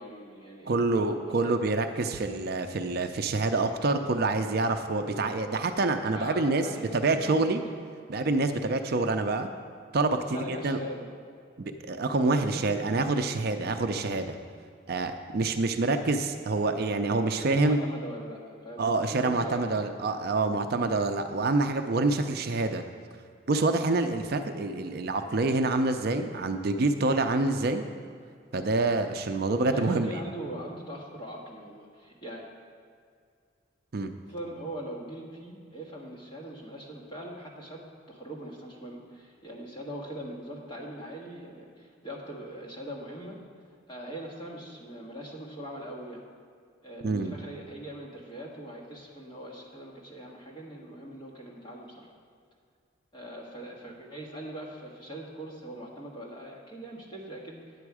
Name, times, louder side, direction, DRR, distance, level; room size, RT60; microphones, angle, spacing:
voice 1, 0.0-1.5 6.1-7.5 10.1-11.1 12.3-12.6 17.3-19.8 29.6-32.4 34.3-46.2 46.8-52.1 53.1-57.9, right 1 dB, 25° left, -3 dB, 1.6 m, -41 dB
voice 2, 0.7-6.6 6.9-7.6 8.1-9.5 9.9-10.2 10.5-10.8 11.6-14.4 14.9-17.8 18.8-22.8 23.5-27.8 28.5-30.1 33.9-34.1 47.0-47.3, right 3 dB, 50° right, 7 dB, 0.5 m, -27 dB
9.8 x 8.0 x 4.8 m, 2.2 s
head